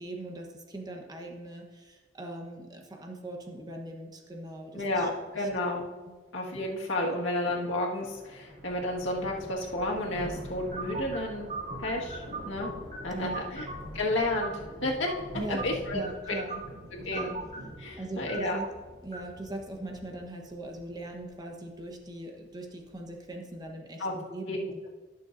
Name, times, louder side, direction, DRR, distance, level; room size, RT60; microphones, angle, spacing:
voice 1, 0.0-5.1 5.3-5.5 7.0-7.2 13.1-13.4 15.3-16.6 17.1-17.3 18.0-18.7 19.0-24.9, right 1 dB, 20° right, 2 dB, 1.1 m, -40 dB
voice 2, 4.7-5.9 6.3-11.5 11.8-12.7 13.0-13.6 13.9-15.1 15.5-16.0 16.9-17.3 17.8-18.6 24.0-24.1 24.5-24.6, left 1 dB, 90° left, -2 dB, 1.8 m, -31 dB
sound 1, 7.7-23.6, right 1 dB, 60° right, 3.6 m, -46 dB
sound 2, 10.7-20.2, right 3 dB, 40° right, 2.6 m, -42 dB
19.5 x 6.8 x 2.7 m, 1.4 s
head